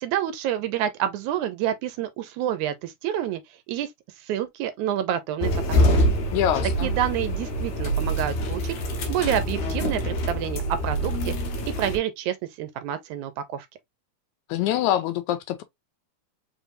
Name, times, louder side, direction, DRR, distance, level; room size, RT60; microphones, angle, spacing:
voice 1, 0.0-3.4 3.7-3.9 4.2-5.5 5.9-6.1 6.8-8.8 9.1-11.3 11.7-13.7, right 10 dB, 80° right, 2.1 m, -28 dB
sound 1, 5.4-12.0, equal, 75° left, 2.3 m, -25 dB
voice 2, 6.3-6.9 14.5-15.6, left 11 dB, 90° left, 2.0 m, -24 dB
5.1 x 3.4 x 2.6 m
omnidirectional pair, 3.4 m